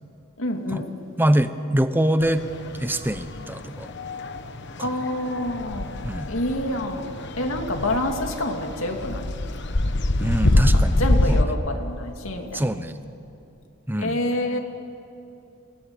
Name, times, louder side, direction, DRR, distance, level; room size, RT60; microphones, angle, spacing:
voice 1, 0.4-0.9 4.8-5.9 6.3-9.3 10.5-10.7 11.0-12.6 14.0-14.6, left 1 dB, 70° left, 3 dB, 2.5 m, -27 dB
voice 2, 1.2-2.4 2.7-3.9 4.8-4.9 6.0-6.3 10.2-11.5 12.5-13.0 13.9-14.2, right 1 dB, 10° right, 10 dB, 0.9 m, -24 dB
sound 1, 2.2-11.4, left 1 dB, 55° left, 1.1 m, -25 dB
30.0 x 18.5 x 9.0 m, 2.7 s
head